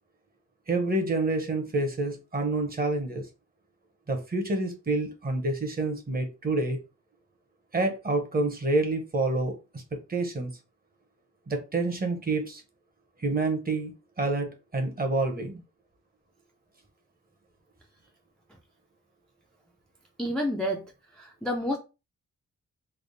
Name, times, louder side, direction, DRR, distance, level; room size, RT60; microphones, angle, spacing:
voice 1, 0.7-3.3 4.1-6.8 7.7-9.8 10.1-10.5 11.5-12.6 13.2-13.9 14.2-15.6, right 2 dB, 30° right, 0.8 m, -28 dB
voice 2, 20.2-21.8, equal, 5° left, 0.4 m, -30 dB
3.4 x 2.0 x 3.9 m
wide cardioid pair, 130°, 30 cm